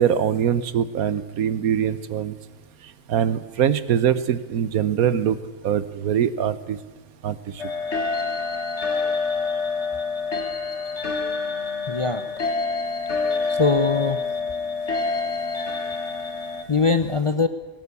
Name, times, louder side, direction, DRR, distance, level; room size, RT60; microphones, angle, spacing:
voice 1, 0.0-2.3 3.1-5.4 5.6-6.8 7.2-7.6, right 9 dB, 85° right, 15 dB, 1.4 m, -23 dB
sound 1, 7.6-16.6, left 4 dB, 50° left, 2.0 m, -27 dB
voice 2, 11.9-12.2 13.1-13.2 13.5-14.2 16.7-17.5, left 4 dB, 35° left, 10 dB, 0.5 m, -22 dB
18.5 x 17.0 x 8.3 m, 1.3 s
omnidirectional pair, 1.5 m